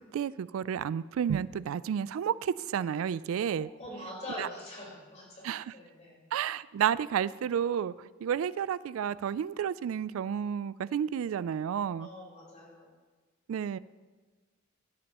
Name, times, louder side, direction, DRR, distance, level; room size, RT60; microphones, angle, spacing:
voice 1, 0.0-3.7 4.4-4.5 5.4-5.7 6.3-12.1 13.5-13.8, right 8 dB, 90° right, 19 dB, 0.3 m, -31 dB
voice 2, 3.6-6.2 12.0-12.9, left 1 dB, 35° left, -3 dB, 4.3 m, -44 dB
15.5 x 11.0 x 3.0 m, 1.4 s
head